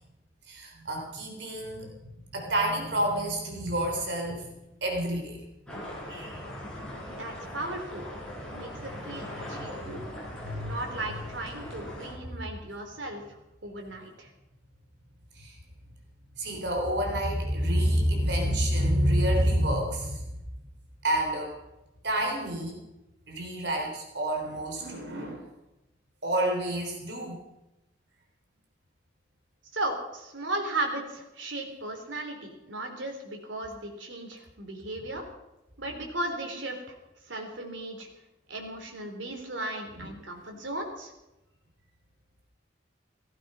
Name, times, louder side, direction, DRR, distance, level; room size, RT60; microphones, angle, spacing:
voice 1, 0.5-1.9 2.3-4.5 4.8-5.4 6.1-6.4 8.7-8.9 9.4-10.8 11.1-11.2 12.2-12.3 15.3-15.6 16.4-20.2 21.0-21.6 22.0-22.8 23.3-25.5 26.2-27.4 39.9-40.1, right 1 dB, 65° right, 1 dB, 3.7 m, -29 dB
sound 1, 5.7-12.1, left 1 dB, 5° left, 6.2 m, -40 dB
voice 2, 7.1-8.0 8.5-10.0 10.6-14.3 29.7-35.3 35.8-37.0 37.3-38.1 38.5-41.1, right 2 dB, 80° right, 3 dB, 3.6 m, -36 dB
16.5 x 14.5 x 5.6 m, 0.96 s
head